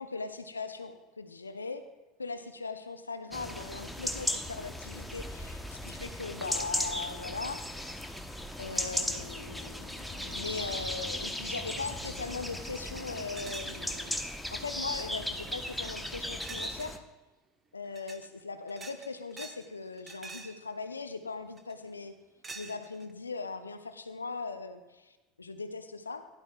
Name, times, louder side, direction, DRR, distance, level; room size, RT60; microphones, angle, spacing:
voice 1, 0.0-1.9 2.2-7.9 8.6-14.2 14.5-17.0 17.7-22.1 22.5-26.3, left 4 dB, 90° left, 9 dB, 0.7 m, -39 dB
sound 1, 3.3-17.0, left 1 dB, ahead, 1.1 m, -37 dB
sound 2, 13.3-14.2 14.7-15.1 16.4-17.0 17.9-18.3 18.7-19.7 19.9-20.6 21.6-21.9 22.4-23.1, right 3 dB, 25° right, 1.2 m, -46 dB
16.0 x 11.5 x 2.4 m, 1.1 s
figure-of-eight pair, 75°, 0 cm